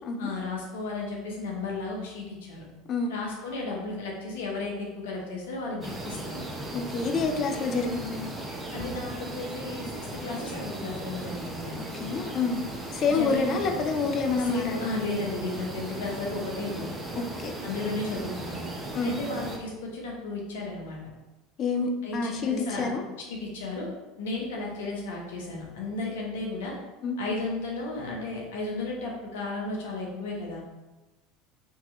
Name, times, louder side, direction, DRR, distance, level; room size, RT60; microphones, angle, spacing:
voice 1, 0.2-2.6 3.1-6.4 8.7-11.8 13.1-13.9 14.4-16.9 17.6-18.7 19.0-21.0 22.0-22.9 23.3-23.9 24.2-26.7 27.2-30.6, left 2 dB, 70° left, -1 dB, 0.8 m, -34 dB
sound 1, 5.8-19.6, right 2 dB, 15° right, 0.8 m, -37 dB
voice 2, 6.7-8.3 11.8-12.6 12.9-14.9 17.2-17.5 18.9-19.3 21.6-23.0 27.0-27.2, left 4 dB, 40° left, 4 dB, 0.4 m, -28 dB
3.8 x 2.8 x 2.6 m, 1.1 s
figure-of-eight pair, 75°, 0 cm